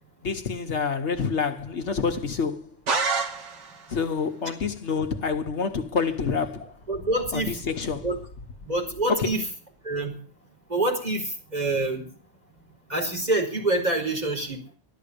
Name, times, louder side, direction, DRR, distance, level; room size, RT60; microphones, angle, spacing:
voice 1, 0.2-2.7 3.9-6.7 7.3-8.1 9.1-9.3, left 5 dB, 65° left, 1.4 m, -27 dB
sound 1, 2.9-3.9, right 4 dB, 70° right, 1.9 m, -27 dB
voice 2, 6.9-7.5 8.0-8.2 8.6-9.4 9.8-10.2 10.7-12.1 12.9-14.7, right 2 dB, 35° right, 4.5 m, -26 dB
13.5 x 12.5 x 6.8 m
omnidirectional pair, 1.3 m